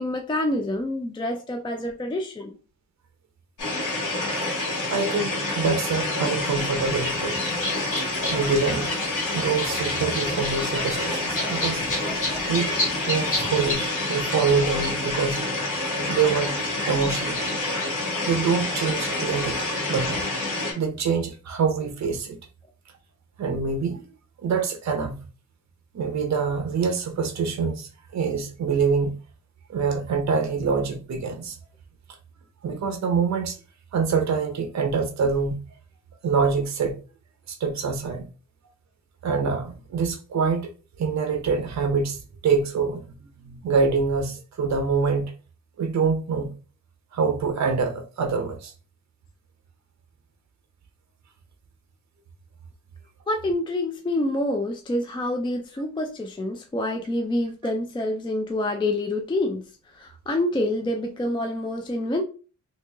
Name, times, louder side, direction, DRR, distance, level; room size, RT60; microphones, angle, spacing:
voice 1, 0.0-2.6 53.3-59.6 59.9-62.2, left 1 dB, 15° left, 0.3 m, -27 dB
sound 1, 3.6-20.7, left 2 dB, 75° left, 1.7 m, -28 dB
voice 2, 4.9-7.4 8.0-8.9 9.3-11.8 12.4-12.7 13.0-15.4 16.1-16.5 16.9-17.5 18.2-20.2 20.7-22.4 23.4-24.0 24.4-25.1 25.9-29.1 29.7-31.6 32.6-33.6 33.9-35.5 36.2-37.0 37.5-38.3 39.2-40.7 41.0-45.2 45.8-46.5 47.1-48.7, right 5 dB, 60° right, 0.8 m, -25 dB
sound 2, 6.8-13.7, left 2 dB, 45° left, 1.6 m, -31 dB
3.0 x 2.8 x 3.4 m
wide cardioid pair, 175°, 32 cm